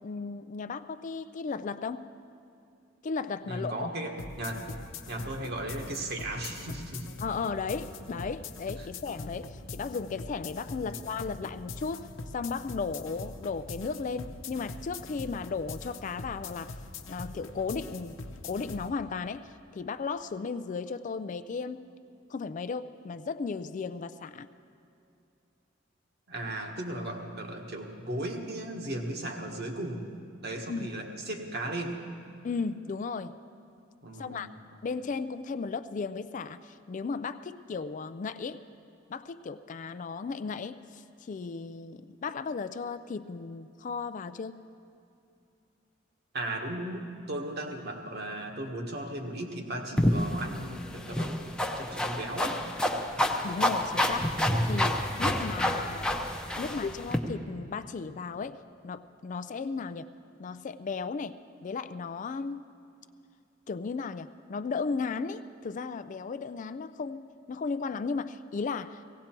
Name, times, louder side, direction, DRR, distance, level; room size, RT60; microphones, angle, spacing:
voice 1, 0.0-2.1 3.0-3.9 7.2-16.7 17.1-21.9 22.3-24.5 30.7-30.9 32.4-33.4 34.2-34.5 34.8-38.6 39.1-44.6 53.4-56.1 56.5-60.1 60.4-62.7 63.7-69.0, left 4 dB, 40° left, 12 dB, 0.4 m, -35 dB
voice 2, 3.4-4.7 5.1-7.1 10.8-11.0 26.3-30.0 30.4-32.0 34.0-34.6 46.3-52.6, right 1 dB, 55° right, 2 dB, 1.5 m, -36 dB
sound 1, 4.2-18.9, left 3 dB, 75° left, 0.8 m, -43 dB
sound 2, 50.0-57.2, left 1 dB, 5° left, 0.8 m, -29 dB
17.0 x 16.5 x 4.5 m, 2.6 s
head